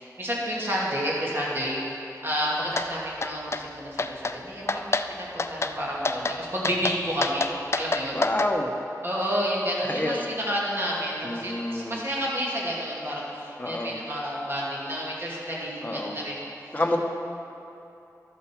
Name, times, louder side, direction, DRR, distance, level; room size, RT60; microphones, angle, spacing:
voice 1, 0.0-1.8 2.2-8.2 9.0-16.4, equal, 35° right, -6 dB, 2.6 m, -30 dB
sound 1, 2.8-2.9 3.2-3.6 4.0-4.4 4.7-5.1 5.4-5.7 6.0-6.4 6.6-8.5, left 3 dB, 45° left, 0.4 m, -27 dB
voice 2, 8.1-8.7 9.8-10.2 11.2-12.0 13.6-14.0 15.8-16.2 16.7-17.0, left 1 dB, 25° left, 1 dB, 1.1 m, -28 dB
12.5 x 7.6 x 4.6 m, 2.9 s
wide cardioid pair, 75°, 7 cm